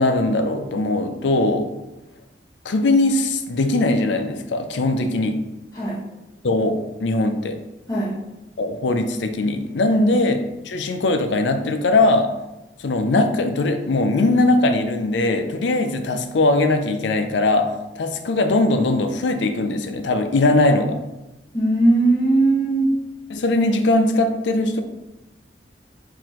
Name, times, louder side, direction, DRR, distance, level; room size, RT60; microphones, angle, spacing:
voice 1, 0.0-1.7 2.6-5.4 6.4-7.6 8.6-10.4 10.6-12.3 12.8-21.0 23.3-24.8, left 2 dB, 80° left, 8 dB, 0.5 m, -20 dB
voice 2, 21.5-22.9, right 2 dB, 20° left, -8 dB, 1.4 m, -19 dB
4.7 x 3.7 x 3.0 m, 0.98 s
head